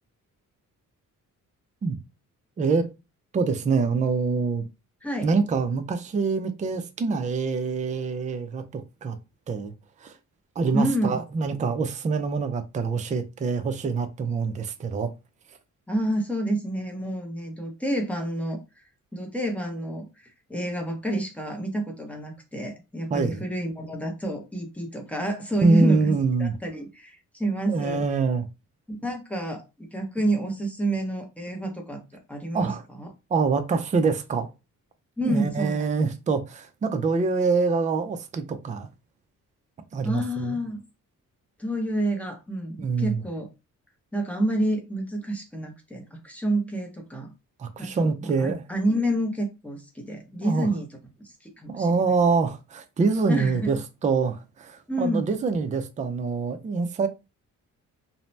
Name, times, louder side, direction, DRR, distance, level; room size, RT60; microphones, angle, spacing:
voice 1, 2.6-2.9 3.3-4.7 5.2-9.2 9.5-9.7 10.0-10.1 10.6-15.1 23.1-23.4 25.6-26.5 27.7-28.5 32.5-32.8 33.3-34.5 35.2-38.9 39.9-40.6 42.8-43.2 47.6-48.6 50.4-50.7 51.7-53.8 54.0-57.1, right 4 dB, 25° right, 0.3 m, -25 dB
voice 2, 10.7-11.2 15.9-18.6 19.1-26.1 26.4-28.0 28.9-33.1 35.2-36.1 40.0-40.8 41.6-43.5 44.1-47.3 47.8-51.0 51.6-52.1 53.3-53.7 54.9-55.3, right 1 dB, 5° left, 0.7 m, -29 dB
2.7 x 2.0 x 3.1 m
cardioid pair, 140°, 33 cm